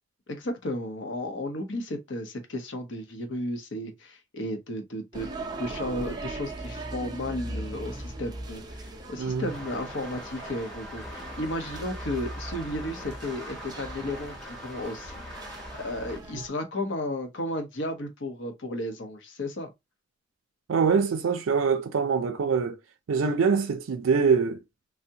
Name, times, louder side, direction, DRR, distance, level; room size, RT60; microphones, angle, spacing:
voice 1, 0.3-5.3 5.6-15.1 15.8-19.7, left 1 dB, 60° left, 0.7 m, -34 dB
sound 1, 5.1-16.5, right 2 dB, 20° right, 0.5 m, -39 dB
voice 2, 9.2-9.5 20.7-22.8 23.1-24.6, right 5 dB, 80° right, 0.4 m, -24 dB
sound 2, 9.5-16.2, equal, 5° left, 0.8 m, -43 dB
3.4 x 2.0 x 2.7 m
head